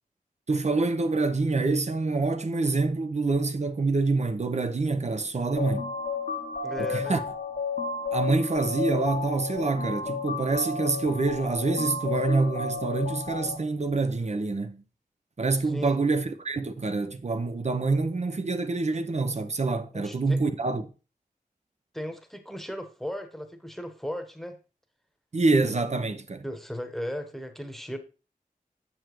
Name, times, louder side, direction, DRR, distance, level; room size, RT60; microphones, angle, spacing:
voice 1, 0.5-5.9 6.8-7.2 8.1-14.8 15.4-20.8 25.3-26.4, right 3 dB, 50° right, 0.8 m, -26 dB
sound 1, 5.6-13.6, left 4 dB, 65° left, 1.1 m, -32 dB
voice 2, 6.6-7.2 15.6-16.0 19.9-20.4 21.9-24.6 26.4-28.0, equal, ahead, 1.2 m, -36 dB
7.5 x 7.3 x 3.1 m
wide cardioid pair, 70°, 15 cm